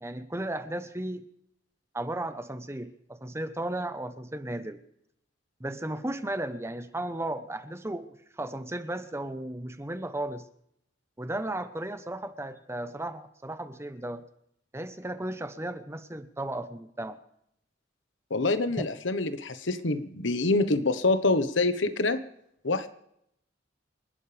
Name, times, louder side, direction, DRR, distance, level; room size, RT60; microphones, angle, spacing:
voice 1, 0.0-1.2 1.9-4.8 5.6-10.4 11.2-14.2 14.7-17.2 18.5-18.6, right 1 dB, 15° right, 10 dB, 1.0 m, -35 dB
voice 2, 18.3-22.2 22.6-22.9, left 2 dB, 80° left, 11 dB, 1.3 m, -26 dB
28.5 x 12.0 x 3.5 m, 0.75 s
head